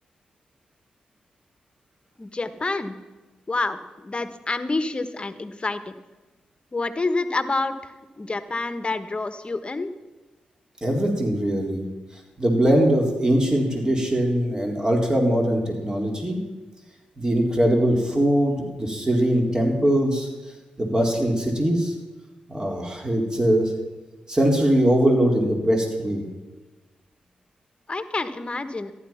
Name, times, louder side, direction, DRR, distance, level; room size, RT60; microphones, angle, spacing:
voice 1, 2.2-2.9 3.5-5.9 6.7-9.9 27.9-28.9, left 3 dB, 35° left, 11 dB, 1.4 m, -28 dB
voice 2, 10.8-11.8 12.4-16.4 17.2-20.3 20.8-21.9 22.5-23.7 24.3-26.2, right 1 dB, 25° right, 1 dB, 4.0 m, -21 dB
14.5 x 11.0 x 5.8 m, 1.2 s
supercardioid pair, 45°, 3 cm